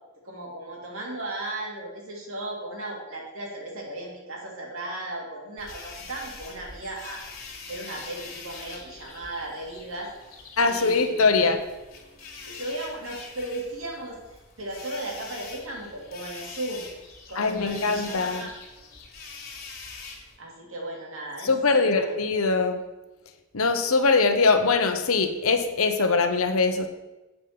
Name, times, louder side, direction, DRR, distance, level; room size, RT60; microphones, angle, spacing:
voice 1, 0.2-7.2 7.7-10.1 10.7-11.5 12.4-16.9 17.3-18.5 20.4-22.0, right 1 dB, 65° right, -1 dB, 2.5 m, -36 dB
sound 1, 5.6-20.4, left 4 dB, 40° left, 2.0 m, -44 dB
voice 2, 10.6-11.6 17.4-18.5 21.4-22.8 23.5-26.9, left 4 dB, 70° left, 7 dB, 0.9 m, -22 dB
8.2 x 5.6 x 6.8 m, 1.1 s
head